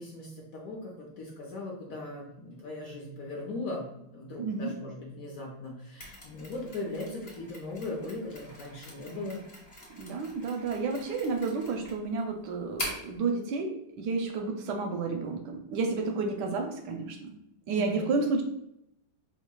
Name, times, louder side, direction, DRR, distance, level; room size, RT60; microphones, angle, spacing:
voice 1, 0.0-9.4 17.8-18.2, left 2 dB, 65° left, -1 dB, 0.9 m, -39 dB
voice 2, 4.4-4.7 10.0-17.4 17.7-18.4, right 4 dB, 75° right, 3 dB, 1.1 m, -31 dB
Mechanisms, 6.0-13.2, left 1 dB, 35° left, 1.2 m, -43 dB
4.5 x 2.9 x 2.2 m, 0.81 s
omnidirectional pair, 2.0 m